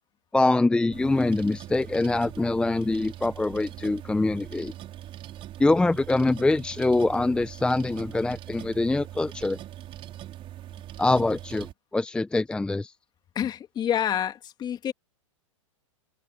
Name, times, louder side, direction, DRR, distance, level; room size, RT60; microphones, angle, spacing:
voice 1, 0.3-4.7 5.6-9.6 11.0-12.9, left 2 dB, 5° left, 0.8 m, -24 dB
sound 1, 0.9-11.7, right 13 dB, 30° right, 5.1 m, -42 dB
voice 2, 13.3-14.9, left 10 dB, 25° left, 2.5 m, -28 dB
hypercardioid pair, 120°, 17 cm